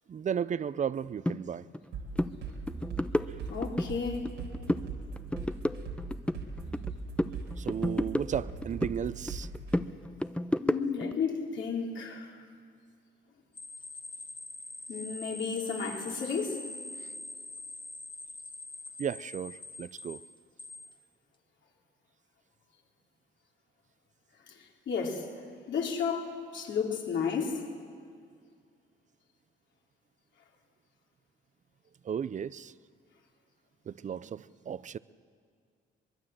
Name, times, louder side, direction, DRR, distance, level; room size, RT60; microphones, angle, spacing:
voice 1, 0.1-1.7 7.6-9.5 19.0-20.2 32.0-32.7 33.9-35.0, right 8 dB, 40° right, 0.6 m, -34 dB
sound 1, 1.2-1.4 1.7-1.9 2.1-2.3 2.7-3.9 4.2-4.9 5.2-6.9 7.2-9.0 9.3-11.1, left 1 dB, 5° left, 0.7 m, -31 dB
sound 2, 1.9-9.8, right 4 dB, 90° right, 3.7 m, -40 dB
voice 2, 3.5-4.3 10.6-12.4 14.9-16.6 24.5-25.3 25.7-27.7, left 6 dB, 70° left, 3.4 m, -33 dB
sound 3, 13.6-21.0, left 2 dB, 25° left, 1.5 m, -44 dB
23.5 x 21.5 x 7.7 m
cardioid pair, 90°, 20 cm